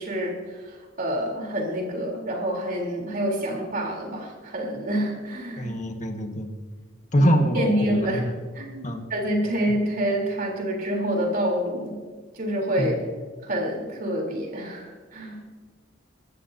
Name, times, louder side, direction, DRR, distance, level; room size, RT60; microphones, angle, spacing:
voice 1, 0.0-5.7 7.2-7.3 7.5-8.2 8.6-12.0 12.3-12.9 13.4-15.4, equal, 50° right, 0 dB, 3.6 m, -27 dB
voice 2, 5.6-6.5 7.1-8.5 8.8-9.1 12.8-13.1, equal, 40° left, 4 dB, 1.5 m, -24 dB
24.5 x 13.0 x 2.8 m, 1.4 s
head